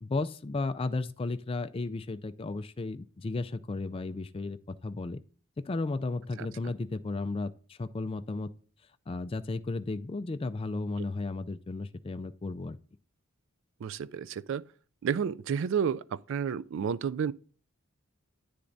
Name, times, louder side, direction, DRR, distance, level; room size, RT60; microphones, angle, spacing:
voice 1, 0.0-5.2 5.6-8.5 9.1-12.8, left 3 dB, 25° left, 0.3 m, -34 dB
voice 2, 13.8-14.6 15.0-17.3, right 7 dB, 60° right, 0.3 m, -31 dB
10.0 x 9.6 x 2.6 m
head